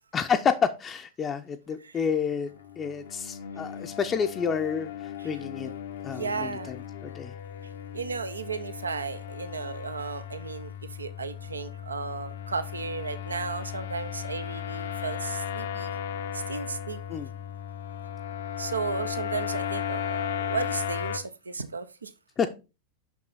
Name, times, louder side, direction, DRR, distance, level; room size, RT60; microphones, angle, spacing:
voice 1, 0.1-2.5 2.8-4.9 5.2-5.7 6.0-6.8 7.0-7.4 17.1-17.3 22.4-22.5, left 6 dB, 25° left, 0.6 m, -29 dB
sound 1, 2.4-21.2, left 8 dB, 60° left, 0.7 m, -36 dB
voice 2, 6.0-6.7 7.6-15.9 16.3-17.3 18.6-22.1, right 5 dB, 75° right, 0.7 m, -34 dB
6.0 x 6.0 x 4.1 m
figure-of-eight pair, 90°, 0 cm